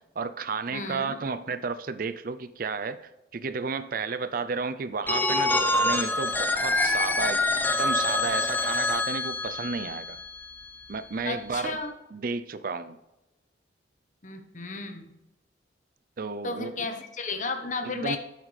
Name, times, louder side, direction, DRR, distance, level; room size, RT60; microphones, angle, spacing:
voice 1, 0.2-7.4 7.8-10.2 10.9-11.8 12.1-13.0 16.2-16.9 17.8-18.2, right 4 dB, 50° right, 12 dB, 0.5 m, -32 dB
voice 2, 0.7-1.1 11.2-11.9 14.2-15.1 16.4-18.2, left 3 dB, 40° left, 7 dB, 1.0 m, -33 dB
Telephone, 5.1-10.8, left 2 dB, 10° left, 0.6 m, -26 dB
11.0 x 8.3 x 3.3 m, 0.98 s
head